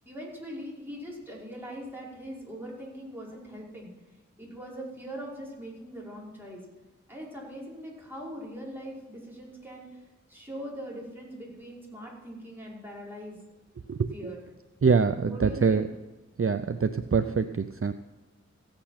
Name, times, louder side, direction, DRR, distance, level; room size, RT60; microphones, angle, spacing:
voice 1, 0.1-3.9 4.4-6.6 7.1-9.9 10.3-13.4 14.1-14.4 15.3-15.9, equal, 5° right, -5 dB, 5.3 m, -41 dB
voice 2, 14.8-15.8 16.4-17.9, right 5 dB, 50° right, 10 dB, 0.5 m, -24 dB
15.5 x 8.8 x 5.8 m, 1.2 s
wide cardioid pair, 45°, 29 cm